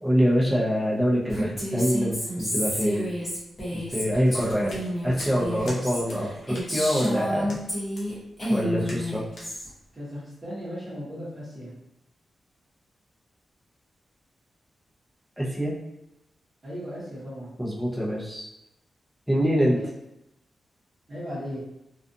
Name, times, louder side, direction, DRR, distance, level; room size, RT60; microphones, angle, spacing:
voice 1, 0.0-3.1 3.7-7.6 8.5-9.2 15.4-15.7 17.6-18.5 19.3-19.8, equal, 5° right, -6 dB, 0.6 m, -25 dB
Female speech woman speaking, 1.3-8.1 8.4-9.7, equal, 20° left, 1.0 m, -30 dB
sound 1, 4.2-5.8 6.1-6.2 6.5-6.7 7.0-7.1 7.5-7.6 7.9-8.1 8.4-8.5 8.8-9.1 9.3-9.5, left 1 dB, 75° left, 0.7 m, -42 dB
voice 2, 9.9-11.7 16.6-17.5 19.6-19.8 21.1-21.6, equal, 25° right, -12 dB, 1.0 m, -37 dB
2.4 x 2.4 x 2.6 m, 0.85 s
wide cardioid pair, 160°, 0 cm